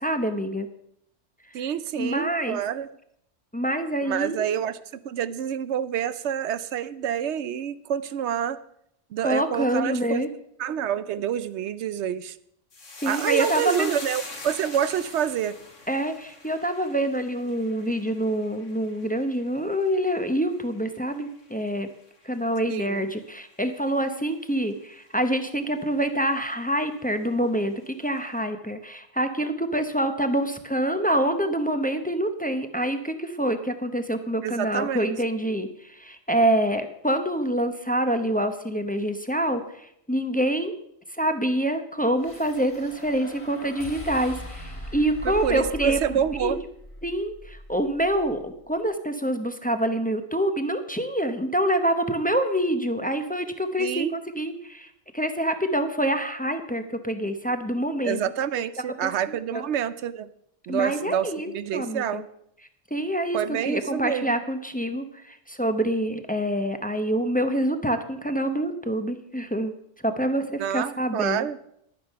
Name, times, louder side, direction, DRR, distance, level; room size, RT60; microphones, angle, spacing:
voice 1, 0.0-0.7 1.6-1.7 2.0-2.6 3.5-4.5 9.2-10.3 13.0-13.9 15.9-21.9 22.2-40.7 41.2-46.5 47.0-54.9 55.1-58.2 59.0-59.6 60.7-62.2 62.9-69.7 70.0-71.5, right 1 dB, 10° left, 8 dB, 0.7 m, -26 dB
voice 2, 1.5-2.9 4.0-8.6 9.1-10.3 10.6-12.4 13.0-15.6 22.7-23.0 34.4-35.1 45.2-46.6 53.8-54.2 58.0-60.3 60.7-62.2 63.3-64.4 70.6-71.6, right 9 dB, 70° right, 14 dB, 0.8 m, -28 dB
sound 1, 12.7-21.3 21.6-22.3 22.6-22.8, left 3 dB, 75° left, 2.2 m, -42 dB
sound 2, 42.2-48.6, equal, 25° left, 1.7 m, -40 dB
11.5 x 9.4 x 5.5 m, 0.74 s
omnidirectional pair, 1.3 m